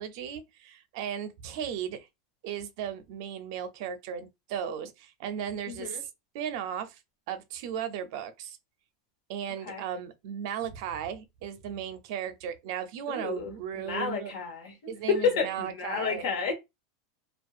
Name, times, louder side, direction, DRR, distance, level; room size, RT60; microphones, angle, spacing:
voice 1, 0.0-2.1 2.4-6.1 6.3-7.0 7.3-8.6 9.3-14.3 14.9-16.3, right 9 dB, 50° right, 0.5 m, -36 dB
voice 2, 5.7-6.0 9.7-9.8 13.1-13.5 13.8-16.5, left 5 dB, 65° left, 1.0 m, -30 dB
2.6 x 2.2 x 2.3 m
supercardioid pair, 165°, 3 cm